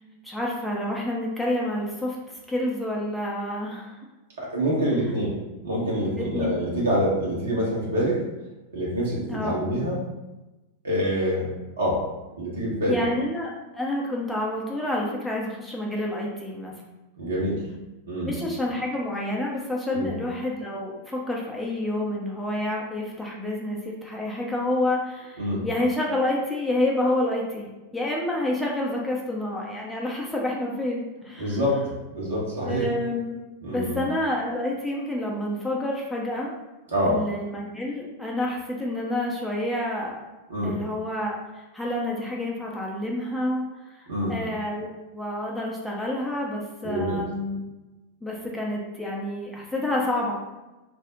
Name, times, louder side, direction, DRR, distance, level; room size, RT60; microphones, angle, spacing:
voice 1, 0.2-2.2 2.5-4.0 6.2-6.5 9.3-9.6 12.9-13.5 13.8-16.7 18.2-31.6 32.6-33.4 33.7-36.5 37.1-40.2 40.6-43.6 44.0-47.6 48.2-50.3, left 1 dB, 5° left, -3 dB, 0.5 m, -28 dB
voice 2, 4.4-5.3 5.6-8.2 8.7-10.0 10.8-11.5 11.8-12.0 12.4-13.0 17.2-17.6 18.0-18.3 19.9-20.1 25.4-25.6 31.4-32.8 33.6-34.0 36.9-37.2 40.5-40.7 44.1-44.4 46.8-47.2, equal, 65° right, -5 dB, 1.0 m, -26 dB
2.6 x 2.0 x 3.7 m, 1.1 s
figure-of-eight pair, 90°, 0 cm